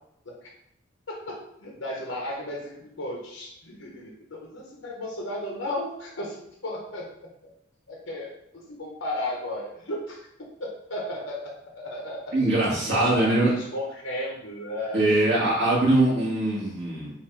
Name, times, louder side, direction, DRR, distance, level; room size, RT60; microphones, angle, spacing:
voice 1, 1.1-6.4 6.6-7.0 7.4-7.5 7.9-10.2 10.6-15.0, left 1 dB, 75° left, -2 dB, 1.0 m, -34 dB
voice 2, 12.3-13.5 14.9-17.1, right 2 dB, 60° right, -6 dB, 1.7 m, -22 dB
5.5 x 2.6 x 3.2 m, 0.77 s
head